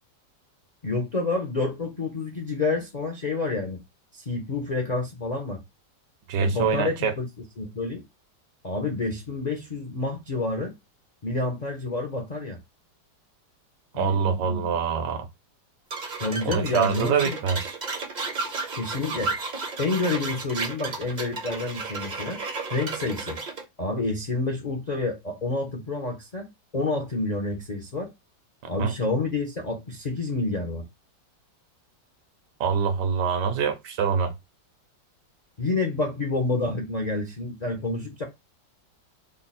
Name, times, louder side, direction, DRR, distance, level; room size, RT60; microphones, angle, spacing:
voice 1, 0.8-3.8 4.1-5.6 6.4-7.3 7.6-8.0 8.6-10.7 11.2-12.6 13.9-14.6 16.2-17.4 18.8-19.3 19.8-22.4 22.7-23.4 23.8-26.5 26.7-28.1 28.7-30.8 35.6-38.2, left 3 dB, 75° left, 0.3 m, -28 dB
voice 2, 6.3-7.1 13.9-15.3 16.5-17.8 28.8-28.9 32.6-34.3, right 6 dB, 75° right, 1.3 m, -25 dB
sound 1, 15.9-23.6, right 4 dB, 50° right, 0.5 m, -33 dB
3.8 x 2.0 x 4.1 m
omnidirectional pair, 1.9 m